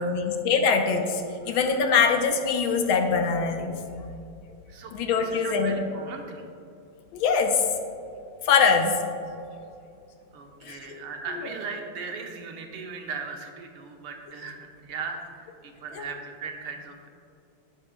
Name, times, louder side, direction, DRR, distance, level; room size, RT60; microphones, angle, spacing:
voice 1, 0.0-3.8 4.9-5.7 7.1-7.6 8.4-9.0 10.6-11.0 15.9-16.0, left 5 dB, 75° left, 5 dB, 1.5 m, -23 dB
voice 2, 4.7-6.5 10.3-17.1, right 5 dB, 80° right, 2 dB, 1.9 m, -38 dB
11.0 x 10.5 x 2.2 m, 2.6 s
omnidirectional pair, 2.4 m